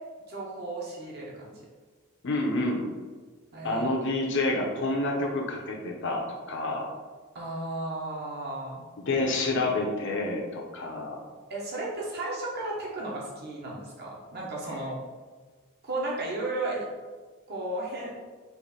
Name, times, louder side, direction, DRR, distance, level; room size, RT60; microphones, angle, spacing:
voice 1, 0.3-1.7 3.5-3.8 7.3-8.8 11.5-15.0 15.8-16.9 17.5-18.1, right 2 dB, 50° right, -4 dB, 1.1 m, -34 dB
voice 2, 2.2-2.8 3.6-6.9 9.0-11.2, left 2 dB, 60° left, 0 dB, 0.8 m, -28 dB
4.6 x 2.7 x 4.2 m, 1.4 s
head